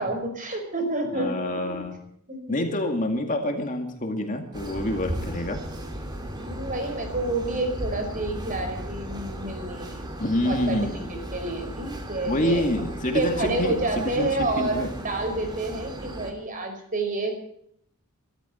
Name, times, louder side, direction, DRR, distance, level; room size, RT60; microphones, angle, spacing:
voice 1, 0.0-1.5 2.3-2.6 6.3-10.0 10.4-10.8 11.1-12.9 13.1-17.3, right 2 dB, 40° right, 5 dB, 5.2 m, -29 dB
voice 2, 1.1-2.0 2.5-5.6 10.2-11.1 12.3-14.9, left 1 dB, 35° left, 4 dB, 2.3 m, -27 dB
sound 1, 4.5-16.3, right 1 dB, 20° right, 3.0 m, -36 dB
23.5 x 13.5 x 4.5 m, 0.69 s
head